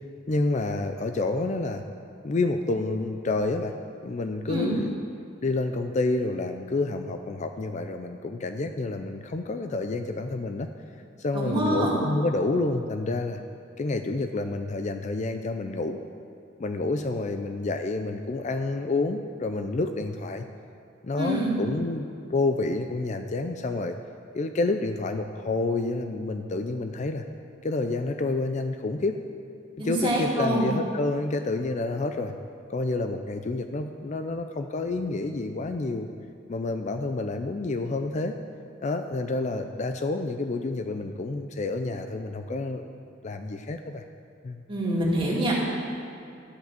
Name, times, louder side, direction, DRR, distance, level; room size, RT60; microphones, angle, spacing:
voice 1, 0.3-1.8 2.2-3.7 4.0-5.0 5.4-10.7 11.2-13.4 13.8-16.0 16.6-20.5 21.0-24.0 24.3-27.2 27.6-29.2 29.8-32.3 32.7-36.1 36.5-38.3 38.8-42.8 43.2-44.0 44.4-44.6, left 2 dB, 35° left, 7 dB, 0.4 m, -29 dB
voice 2, 11.3-12.0 21.2-21.5 29.8-30.7 44.7-45.5, right 1 dB, 25° right, -5 dB, 2.2 m, -26 dB
13.0 x 5.8 x 7.5 m, 2.5 s
head